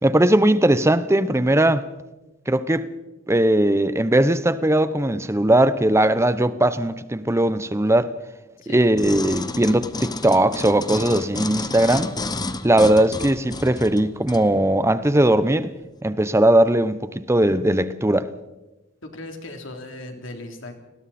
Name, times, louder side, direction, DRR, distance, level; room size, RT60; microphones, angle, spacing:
voice 1, 0.0-1.9 2.5-2.9 3.3-8.1 8.7-12.2 12.6-15.7 16.0-18.3, right 1 dB, 15° right, 0.7 m, -19 dB
sound 1, 9.0-14.5 15.0-15.1, left 2 dB, 20° left, 1.0 m, -31 dB
voice 2, 19.0-20.7, left 2 dB, 75° left, 3.3 m, -37 dB
30.0 x 20.0 x 4.3 m
head